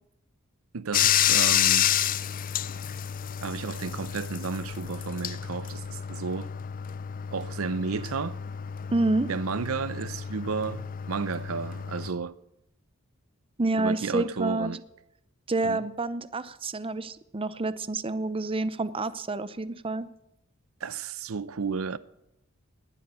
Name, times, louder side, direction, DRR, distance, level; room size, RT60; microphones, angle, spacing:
voice 1, 0.7-1.9 3.4-6.5 7.3-8.4 9.3-12.4 13.8-14.8 15.6-15.8 20.8-22.0, right 5 dB, 90° right, 0.6 m, -32 dB
Bathtub (filling or washing), 0.9-12.1, left 10 dB, 40° left, 0.5 m, -29 dB
voice 2, 8.9-9.3 13.6-14.7 15.5-20.1, right 2 dB, 25° right, 0.7 m, -28 dB
20.5 x 7.8 x 8.9 m
head